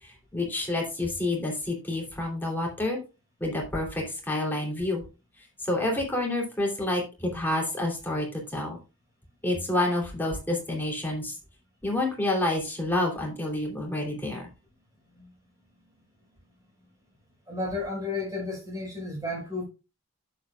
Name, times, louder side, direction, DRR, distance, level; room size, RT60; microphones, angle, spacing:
voice 1, 0.0-3.0 3.4-5.0 5.6-8.8 9.4-11.4 11.8-14.5, left 1 dB, 10° left, 2.9 m, -28 dB
voice 2, 17.5-19.6, left 2 dB, 15° right, 4.7 m, -32 dB
10.5 x 7.9 x 2.3 m
head